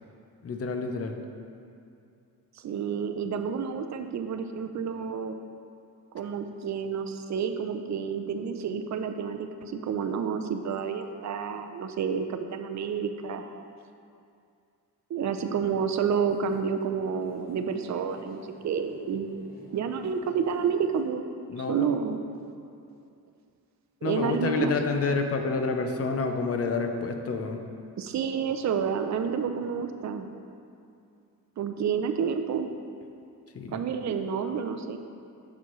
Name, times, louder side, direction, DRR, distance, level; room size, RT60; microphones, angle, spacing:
voice 1, 0.4-1.1 21.5-21.9 24.0-27.6 33.5-33.8, left 4 dB, 40° left, 5 dB, 0.6 m, -28 dB
voice 2, 2.6-5.4 6.1-13.6 15.1-19.5 19.7-21.2 21.6-22.2 24.0-24.7 28.0-30.3 31.6-32.7 33.7-35.0, right 6 dB, 45° right, 7 dB, 0.5 m, -29 dB
sound 1, 15.9-21.0, left 2 dB, 25° left, 0.9 m, -52 dB
6.9 x 6.2 x 3.1 m, 2.5 s
cardioid pair, 110°, 39 cm